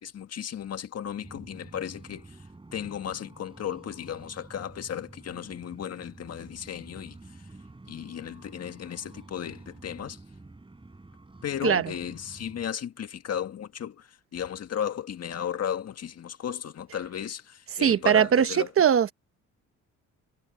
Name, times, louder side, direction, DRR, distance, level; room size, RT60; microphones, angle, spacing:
voice 1, 0.0-2.4 2.7-7.4 7.9-10.2 11.4-18.7, left 9 dB, 55° left, 1.8 m, -35 dB
sound 1, 1.2-12.7, right 2 dB, 15° right, 4.0 m, -49 dB
voice 2, 17.8-19.1, right 8 dB, 45° right, 0.9 m, -21 dB
cardioid pair, 90°, 30 cm